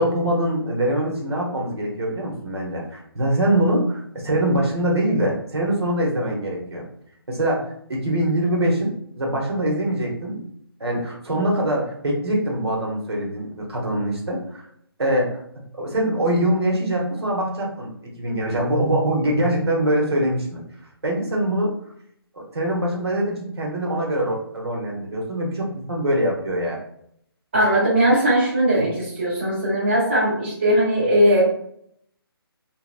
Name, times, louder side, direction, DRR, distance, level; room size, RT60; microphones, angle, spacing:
voice 1, 0.0-6.8 7.3-10.4 10.8-14.6 15.0-15.4 15.7-17.9 18.2-20.6 21.0-21.7 22.3-26.8, right 1 dB, 80° right, -1 dB, 1.0 m, -23 dB
voice 2, 27.5-31.5, right 1 dB, 25° right, -6 dB, 0.6 m, -19 dB
2.9 x 2.0 x 2.5 m, 0.69 s
hypercardioid pair, 175°, 13 cm